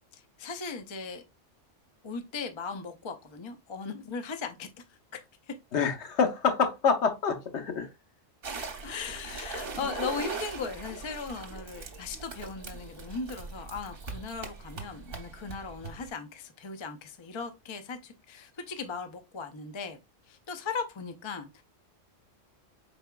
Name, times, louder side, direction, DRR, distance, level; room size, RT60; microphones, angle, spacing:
voice 1, 0.1-1.2 2.0-5.2 5.5-5.6 8.8-20.0 20.3-21.6, left 4 dB, 40° left, 0.4 m, -38 dB
voice 2, 5.7-7.9, left 5 dB, 65° left, 1.1 m, -26 dB
sound 1, 8.4-16.1, right 4 dB, 50° right, 1.0 m, -40 dB
4.7 x 4.0 x 2.2 m
omnidirectional pair, 1.3 m